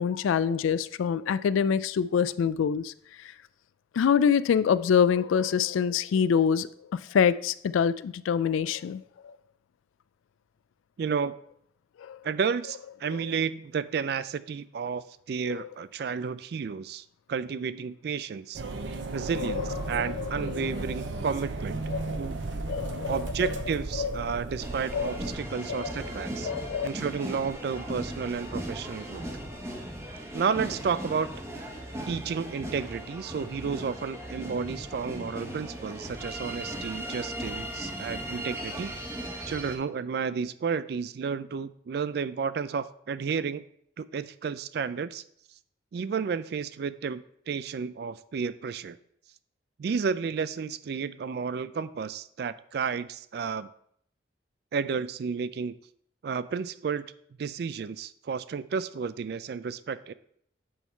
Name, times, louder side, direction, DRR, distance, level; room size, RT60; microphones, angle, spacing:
voice 1, 0.0-2.9 3.9-9.3 12.0-12.2 19.4-20.2 21.9-22.2 22.7-23.5 24.0-24.2 24.9-25.2 25.7-25.9 26.4-26.9, left 7 dB, 90° left, 16 dB, 0.3 m, -26 dB
voice 2, 11.0-11.3 12.2-18.6 19.1-21.8 22.2-22.4 23.1-26.5 26.8-29.3 30.3-31.3 32.1-38.9 39.5-43.6 44.0-45.2 45.9-49.0 49.8-53.7 54.7-55.8 56.2-57.0 57.4-60.1, right 6 dB, 55° right, 15 dB, 0.3 m, -32 dB
sound 1, 18.5-25.3, right 3 dB, 75° right, 0.7 m, -35 dB
sound 2, 24.6-39.8, right 1 dB, 15° right, 0.9 m, -37 dB
8.4 x 3.6 x 4.4 m, 0.68 s
head